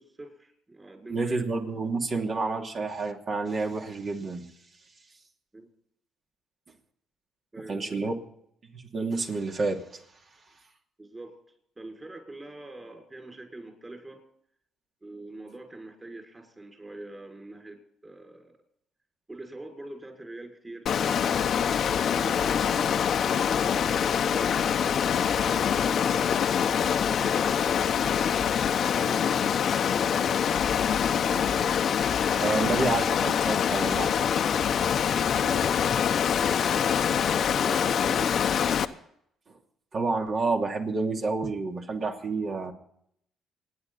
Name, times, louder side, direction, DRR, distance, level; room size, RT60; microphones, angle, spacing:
voice 1, 0.0-1.5 5.5-5.7 7.5-8.2 11.0-11.4 11.8-14.2 15.0-18.6 19.3-25.0 25.4-31.7 35.4-38.3, right 2 dB, 20° right, 2 dB, 6.1 m, -44 dB
voice 2, 1.1-4.5 7.7-8.1 8.7-9.8 32.4-34.3 39.9-42.7, right 3 dB, 45° right, 2 dB, 2.8 m, -29 dB
Water, 20.9-38.9, left 8 dB, 60° left, 0.9 m, -25 dB
28.0 x 10.5 x 4.2 m, 0.72 s
supercardioid pair, 75°, 0 cm